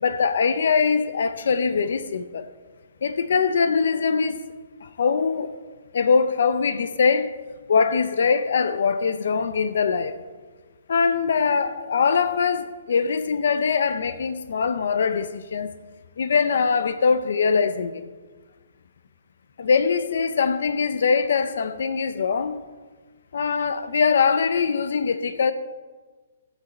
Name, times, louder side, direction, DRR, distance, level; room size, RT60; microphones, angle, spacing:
voice 1, 0.0-2.5 3.0-4.4 4.8-5.5 5.9-7.3 7.7-10.1 10.9-15.7 16.2-18.0 19.6-22.6 23.3-25.5, left 5 dB, 60° left, 0.6 m, -22 dB
12.5 x 8.1 x 4.1 m
hypercardioid pair, 175°, 0 cm